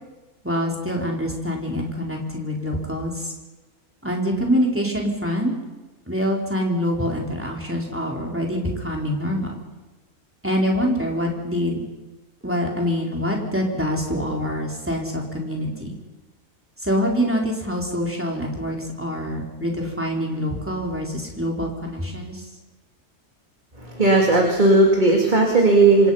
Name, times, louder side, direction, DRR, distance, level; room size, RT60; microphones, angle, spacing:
voice 1, 0.4-3.3 4.0-5.5 6.1-9.5 10.4-11.8 12.4-15.9 16.8-22.5, equal, 10° right, -1 dB, 4.2 m, -25 dB
voice 2, 23.8-26.1, right 2 dB, 30° right, 1 dB, 2.6 m, -16 dB
27.0 x 24.5 x 5.8 m, 1.2 s
omnidirectional pair, 1.5 m